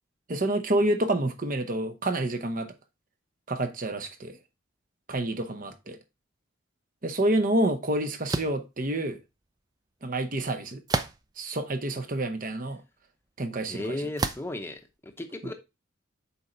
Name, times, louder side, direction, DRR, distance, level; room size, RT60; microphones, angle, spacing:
voice 1, 0.3-2.7 3.5-4.4 5.1-6.0 7.0-9.2 10.0-10.8 11.4-12.8 13.4-14.0 15.4-15.5, right 1 dB, 40° right, 0.9 m, -28 dB
sound 1, 8.3-8.6 10.9-11.4 12.1-12.2 14.2-14.6, right 3 dB, 20° right, 0.4 m, -29 dB
voice 2, 13.7-15.5, left 1 dB, 10° left, 0.8 m, -35 dB
7.0 x 4.5 x 3.9 m
head